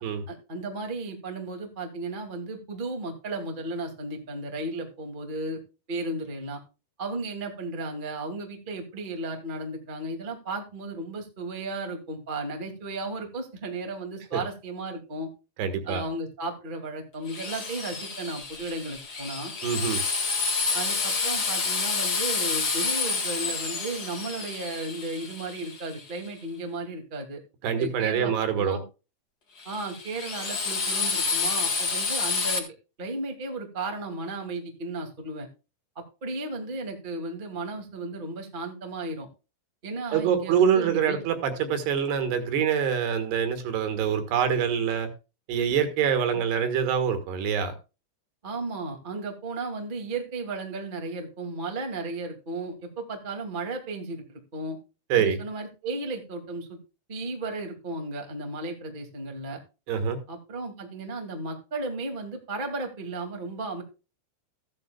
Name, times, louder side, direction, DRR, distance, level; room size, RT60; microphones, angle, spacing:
voice 1, 0.3-5.6 5.9-6.6 7.0-15.3 15.8-19.5 20.7-27.4 27.8-28.8 29.6-32.7 33.0-35.5 35.9-39.3 39.8-41.2 46.3-46.4 48.4-54.8 55.1-56.8 57.1-59.6 60.3-63.8, right 2 dB, 40° right, 3 dB, 0.6 m, -34 dB
voice 2, 15.6-16.0 19.6-20.0 27.6-28.8 40.1-45.1 45.5-47.7 55.1-55.4 59.9-60.2, right 7 dB, 70° right, 8 dB, 3.3 m, -25 dB
Drill, 17.3-26.2 29.6-32.6, left 4 dB, 65° left, 0.9 m, -29 dB
15.0 x 10.5 x 2.3 m, 0.30 s
omnidirectional pair, 5.3 m